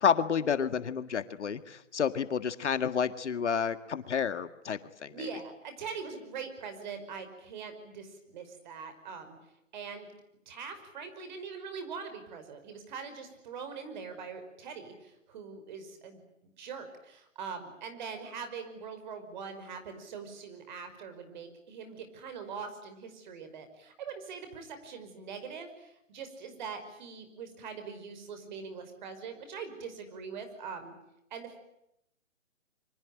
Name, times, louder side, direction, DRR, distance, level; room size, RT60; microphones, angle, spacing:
voice 1, 0.0-5.1, left 7 dB, 65° left, 11 dB, 1.8 m, -30 dB
voice 2, 5.1-9.4 9.7-10.1 10.5-16.2 16.6-31.0 31.3-31.6, right 5 dB, 35° right, 8 dB, 5.5 m, -42 dB
26.5 x 25.0 x 9.0 m, 0.80 s
hypercardioid pair, 155°, 38 cm